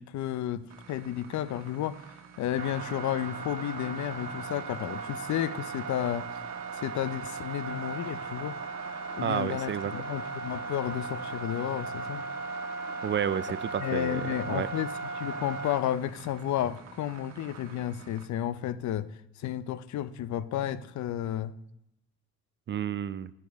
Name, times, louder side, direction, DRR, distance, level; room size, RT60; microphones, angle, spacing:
voice 1, 0.0-2.0 2.4-6.3 6.8-8.6 9.1-12.2 13.8-21.5, left 11 dB, 70° left, 15 dB, 0.6 m, -32 dB
sound 1, 0.7-18.3, right 4 dB, 60° right, 1.4 m, -38 dB
voice 2, 9.2-9.9 13.0-14.7 22.7-23.3, right 9 dB, 40° right, 16 dB, 0.4 m, -31 dB
10.0 x 9.4 x 3.5 m, 0.80 s
cardioid pair, 90°, 30 cm